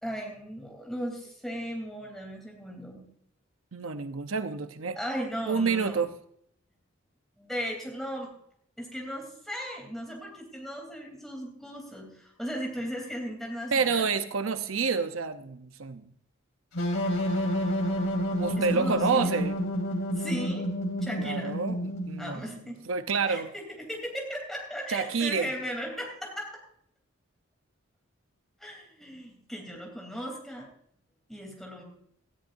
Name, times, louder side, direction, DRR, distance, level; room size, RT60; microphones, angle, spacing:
voice 1, 0.0-3.0 4.9-6.0 7.4-8.3 8.8-14.1 18.6-19.4 20.1-20.7 21.0-21.5 22.2-22.8 23.2-26.6 28.6-30.7 31.3-31.8, equal, ahead, 0 dB, 3.3 m, -37 dB
voice 2, 3.7-5.0 5.5-6.1 13.7-16.0 18.4-19.6 21.2-22.5 22.9-23.5 24.9-25.5, right 5 dB, 80° right, 9 dB, 0.8 m, -28 dB
sound 1, 16.7-22.4, equal, 70° left, 2.8 m, -29 dB
18.0 x 13.5 x 2.6 m, 0.68 s
head